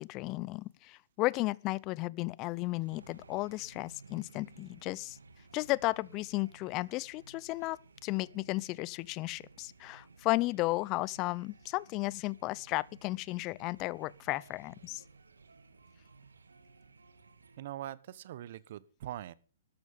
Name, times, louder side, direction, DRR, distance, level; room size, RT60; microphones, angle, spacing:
voice 1, 0.0-5.2 5.5-15.0, left 21 dB, 35° left, 0.6 m, -34 dB
sound 1, 2.8-17.6, right 4 dB, 85° right, 2.0 m, -58 dB
voice 2, 17.6-19.3, right 12 dB, 55° right, 1.1 m, -42 dB
13.0 x 13.0 x 5.3 m
hypercardioid pair, 130°, 0 cm